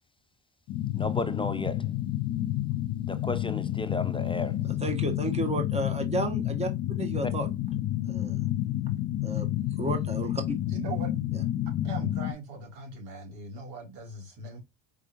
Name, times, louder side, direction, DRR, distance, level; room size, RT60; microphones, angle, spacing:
sound 1, 0.7-12.3, left 13 dB, 60° left, 0.7 m, -30 dB
voice 1, 0.9-1.9 3.0-4.6, left 2 dB, 15° left, 0.7 m, -33 dB
voice 2, 4.7-6.7 7.0-7.5 8.1-8.4 9.2-9.5 9.8-10.4, right 1 dB, 15° right, 1.2 m, -32 dB
voice 3, 10.6-11.1 11.8-14.6, right 3 dB, 75° right, 2.4 m, -40 dB
5.0 x 3.5 x 2.6 m
supercardioid pair, 75°, 39 cm